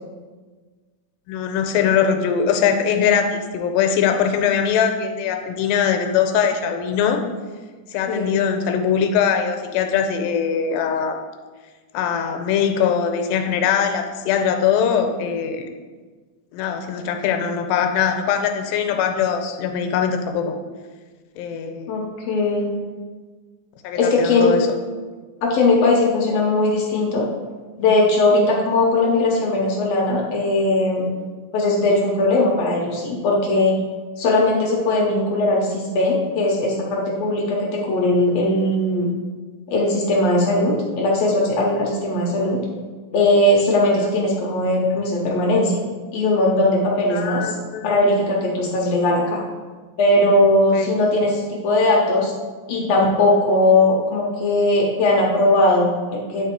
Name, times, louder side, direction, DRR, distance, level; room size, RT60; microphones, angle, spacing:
voice 1, 1.3-7.2 7.9-11.2 11.9-15.7 16.5-20.6 21.4-21.9 23.8-24.7 47.1-48.0 50.7-50.9, left 7 dB, 85° left, 6 dB, 2.4 m, -21 dB
voice 2, 21.9-22.8 23.9-24.5 25.4-27.2 27.8-31.1 31.5-33.8 34.2-39.1 39.7-42.6 43.1-45.8 46.1-47.5 47.8-49.4 50.0-52.3 52.7-56.5, left 2 dB, 70° left, -2 dB, 1.6 m, -19 dB
8.9 x 4.1 x 4.5 m, 1.4 s
omnidirectional pair, 4.1 m